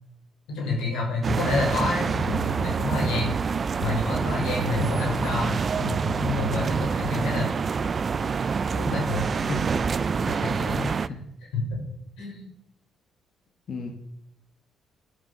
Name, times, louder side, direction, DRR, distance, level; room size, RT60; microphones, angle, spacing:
voice 1, 0.5-3.4 3.8-7.5 8.7-9.3 10.2-10.9 11.5-11.8 12.2-12.4, left 3 dB, 90° left, 0 dB, 5.7 m, -28 dB
sound 1, 1.2-11.1, right 5 dB, 40° right, 0.6 m, -27 dB
voice 2, 9.5-9.8 11.1-11.2 13.7-13.9, left 2 dB, 55° left, 2 dB, 2.3 m, -31 dB
12.5 x 10.5 x 7.1 m, 0.77 s
cardioid pair, 90°, 0 cm